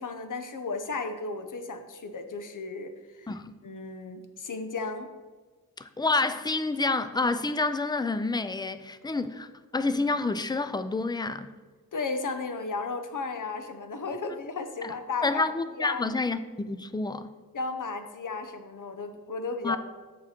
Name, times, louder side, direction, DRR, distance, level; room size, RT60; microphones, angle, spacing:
voice 1, 0.0-3.3 3.6-5.1 11.9-15.4 15.8-16.0 17.5-19.8, left 4 dB, 60° left, 0.8 m, -34 dB
voice 2, 5.8-9.5 9.7-11.5 14.8-14.9 15.2-17.3 19.6-19.8, left 3 dB, 10° left, 0.3 m, -28 dB
7.3 x 6.2 x 4.3 m
wide cardioid pair, 95°, 35 cm